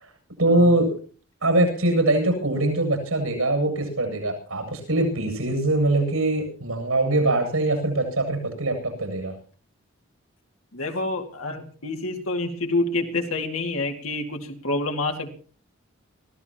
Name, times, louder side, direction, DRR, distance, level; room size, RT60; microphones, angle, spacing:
voice 1, 0.4-0.9 1.4-9.4, right 2 dB, 90° right, 4 dB, 7.8 m, -22 dB
voice 2, 10.7-15.3, left 2 dB, 85° left, 3 dB, 2.5 m, -28 dB
24.5 x 15.5 x 3.0 m, 0.42 s
head